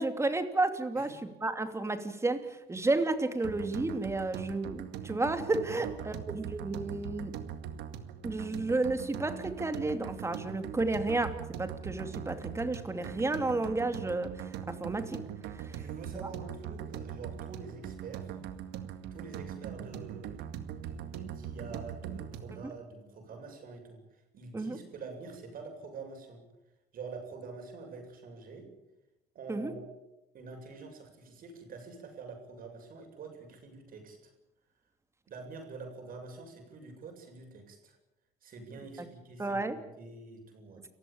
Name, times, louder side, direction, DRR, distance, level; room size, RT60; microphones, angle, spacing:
voice 1, 0.0-7.3 8.2-11.3 11.6-15.2 15.5-15.6 16.1-16.3 24.5-24.8 29.5-29.7 39.4-39.8, right 2 dB, 15° right, 8 dB, 2.8 m, -32 dB
sound 1, 3.4-22.6, right 9 dB, 85° right, 2.0 m, -41 dB
voice 2, 5.7-6.2 15.6-18.4 19.1-20.4 20.7-26.4 26.9-28.7 29.3-29.8 30.3-34.2 35.3-38.0 38.4-40.8, right 4 dB, 55° right, 3 dB, 7.7 m, -46 dB
29.0 x 15.5 x 8.8 m, 0.94 s
cardioid pair, 110°, 17 cm